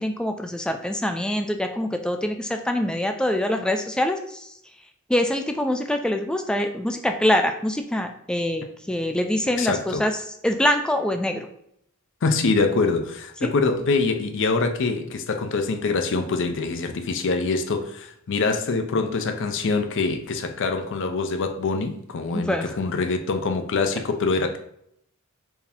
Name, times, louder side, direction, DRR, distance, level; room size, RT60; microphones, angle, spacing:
voice 1, 0.0-4.5 5.1-10.1 10.4-11.5 13.4-13.5 22.3-22.6, left 1 dB, 5° left, 0.3 m, -24 dB
voice 2, 9.5-10.0 12.2-24.6, left 3 dB, 60° left, 0.5 m, -24 dB
4.6 x 2.7 x 3.4 m
head